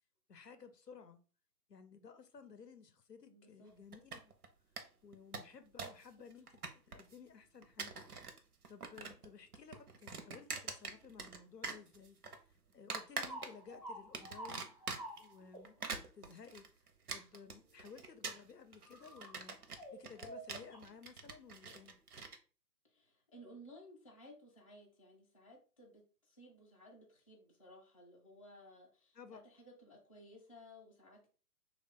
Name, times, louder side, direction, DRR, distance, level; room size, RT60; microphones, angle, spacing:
voice 1, 0.3-1.2 1.7-4.3 5.0-6.5 6.7-8.0 8.7-12.2 12.7-14.9 15.2-16.7 17.1-22.0 29.1-29.4, left 6 dB, 90° left, 0.7 m, -56 dB
voice 2, 3.3-3.8 22.8-31.3, equal, 25° left, 0.5 m, -58 dB
sound 1, 3.9-4.5 4.8-4.9 5.1-6.0 6.3-7.1 7.6-8.4 8.6-9.3 9.5-11.4 11.6-12.4 12.9-13.7 14.1-15.2 15.6-22.4, right 4 dB, 70° right, 0.7 m, -44 dB
sound 2, 13.2-15.8 17.8-18.1 18.8-19.4 19.8-20.8, right 1 dB, 30° right, 0.4 m, -50 dB
3.3 x 2.4 x 3.6 m
figure-of-eight pair, 140°, 48 cm